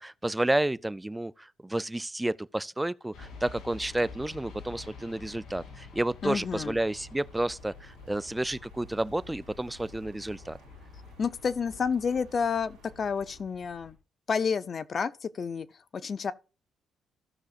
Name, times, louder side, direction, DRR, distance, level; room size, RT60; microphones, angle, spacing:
voice 1, 0.0-10.6, right 1 dB, 10° right, 0.4 m, -31 dB
sound 1, 3.1-13.9, left 4 dB, 75° left, 2.8 m, -48 dB
voice 2, 6.2-6.8 11.2-14.0 14.3-15.7 15.9-16.3, left 6 dB, 45° left, 0.6 m, -30 dB
sound 2, 6.4-13.4, right 8 dB, 80° right, 1.9 m, -59 dB
16.0 x 6.2 x 2.4 m
cardioid pair, 90°, 0 cm